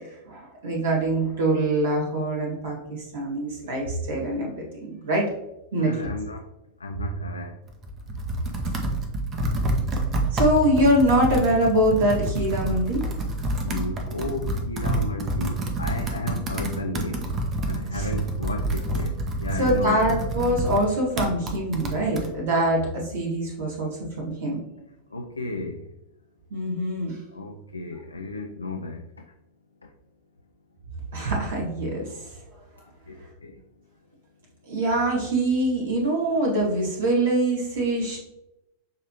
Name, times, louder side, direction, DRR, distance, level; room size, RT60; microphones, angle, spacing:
voice 1, 0.2-5.2 5.7-5.9 10.3-13.0 17.9-18.0 19.6-24.6 26.5-27.2 31.1-32.3 34.7-38.2, right 1 dB, 65° right, -3 dB, 1.6 m, -24 dB
voice 2, 5.8-6.4 6.8-7.6 13.6-17.3 17.7-20.0 25.1-25.8 27.3-29.0 33.1-33.6, left 2 dB, 80° left, 3 dB, 0.4 m, -33 dB
Computer keyboard, 7.7-22.3, right 2 dB, 30° right, 0.7 m, -28 dB
6.2 x 2.9 x 2.8 m, 0.91 s
figure-of-eight pair, 90°, 0 cm